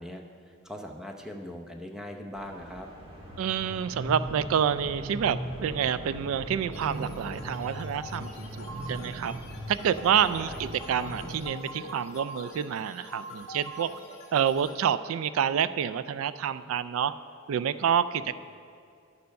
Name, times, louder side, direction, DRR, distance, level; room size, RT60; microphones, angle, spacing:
voice 1, 0.0-2.9 10.3-10.6 18.2-18.3, left 1 dB, 5° right, 3 dB, 0.7 m, -41 dB
sound 1, 2.4-11.4, equal, 25° right, 1.5 m, -39 dB
voice 2, 3.4-9.3 9.7-13.9 14.3-17.1 17.5-18.3, right 8 dB, 85° right, 15 dB, 0.3 m, -28 dB
sound 2, 6.7-14.7, equal, 30° left, 1.7 m, -44 dB
11.5 x 6.9 x 5.3 m, 2.4 s
head